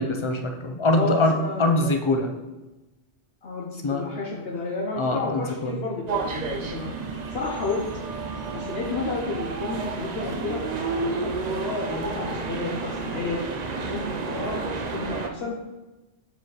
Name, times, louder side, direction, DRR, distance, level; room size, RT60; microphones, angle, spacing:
voice 1, 0.0-2.3 3.8-4.1 5.0-5.8, left 2 dB, 35° left, 5 dB, 0.6 m, -23 dB
voice 2, 0.9-1.9 3.4-6.9 7.3-7.8 8.5-13.4 13.8-15.6, left 3 dB, 60° left, -1 dB, 1.0 m, -31 dB
sound 1, 6.1-15.3, right 4 dB, 50° right, 0.5 m, -31 dB
5.8 x 4.8 x 4.8 m, 1.1 s
omnidirectional pair, 1.2 m